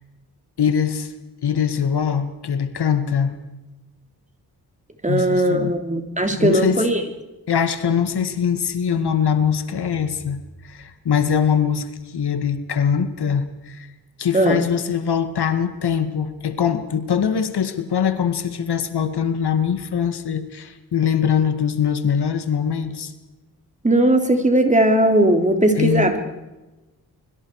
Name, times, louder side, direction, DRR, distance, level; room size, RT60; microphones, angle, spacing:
voice 1, 0.6-1.1 1.4-3.4 5.1-5.7 6.2-6.9 7.5-13.9 14.2-23.1 25.7-26.1, left 7 dB, 75° left, 10 dB, 2.0 m, -22 dB
voice 2, 5.0-7.0 14.3-14.7 23.8-26.2, right 1 dB, 20° right, 5 dB, 3.3 m, -18 dB
24.5 x 23.5 x 4.8 m, 1.1 s
wide cardioid pair, 90°, 39 cm